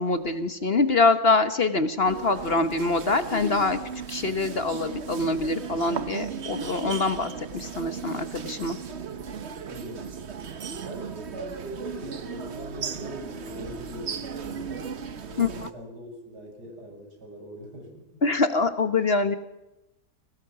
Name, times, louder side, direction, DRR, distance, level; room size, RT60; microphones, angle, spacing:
voice 1, 0.0-3.8 4.1-8.8 15.4-15.7 18.2-19.4, left 3 dB, 40° left, 11 dB, 1.3 m, -24 dB
sound 1, 2.1-15.7, right 6 dB, 45° right, 1.2 m, -36 dB
voice 2, 9.7-10.2 10.8-18.2, equal, 85° right, 1 dB, 7.3 m, -41 dB
23.5 x 18.5 x 6.0 m, 0.94 s
omnidirectional pair, 1.7 m